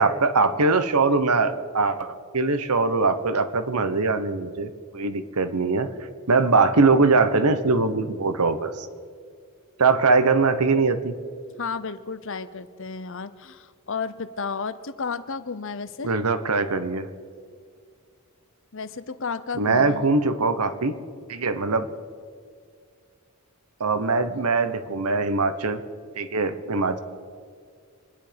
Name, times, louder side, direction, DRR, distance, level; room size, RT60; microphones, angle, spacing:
voice 1, 0.0-2.1 2.3-5.9 6.3-8.9 9.8-11.2 16.0-17.1 19.6-20.9 21.3-21.9 23.8-25.8 26.2-27.0, right 3 dB, 90° right, 10 dB, 1.1 m, -22 dB
voice 2, 11.6-16.1 18.7-20.0, left 5 dB, 60° left, 13 dB, 0.7 m, -32 dB
25.5 x 10.0 x 5.2 m, 2.1 s
head